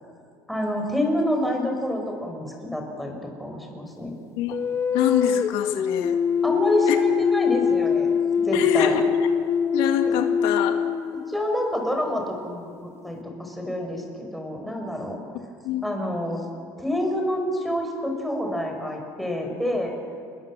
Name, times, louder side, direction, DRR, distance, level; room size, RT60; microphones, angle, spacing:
voice 1, 0.5-4.1 6.4-8.1 8.4-9.0 10.1-10.2 11.3-15.2 15.8-16.5 16.8-19.9, left 1 dB, ahead, 2 dB, 5.3 m, -27 dB
sound 1, 4.5-11.9, left 7 dB, 30° left, 0.6 m, -23 dB
voice 2, 4.9-6.2 6.9-7.0 8.5-9.2 9.7-10.8 15.6-16.0, left 9 dB, 85° left, 5 dB, 2.0 m, -25 dB
29.5 x 21.0 x 7.4 m, 2.4 s
cardioid pair, 130°, 9 cm